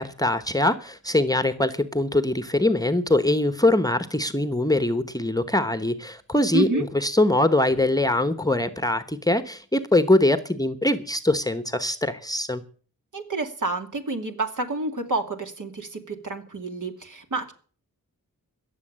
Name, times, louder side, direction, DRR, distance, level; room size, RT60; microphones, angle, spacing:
voice 1, 0.0-12.6, left 1 dB, 10° left, 11 dB, 1.0 m, -22 dB
voice 2, 6.5-6.9 13.1-17.5, right 2 dB, 60° right, 4 dB, 2.5 m, -29 dB
16.5 x 7.2 x 8.7 m, 0.43 s
wide cardioid pair, 75°, 35 cm